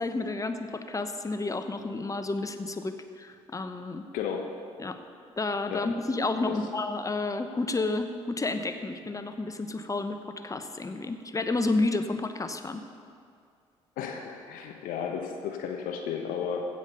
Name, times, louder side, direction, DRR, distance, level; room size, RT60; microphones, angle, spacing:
voice 1, 0.0-4.1 4.8-5.0 5.4-10.2 10.4-12.8, left 3 dB, 20° left, 8 dB, 1.0 m, -31 dB
voice 2, 4.1-4.5 5.7-5.8 6.4-6.5 14.0-16.7, left 7 dB, 65° left, 3 dB, 1.0 m, -33 dB
15.5 x 5.4 x 6.7 m, 2.2 s
figure-of-eight pair, 45°, 15 cm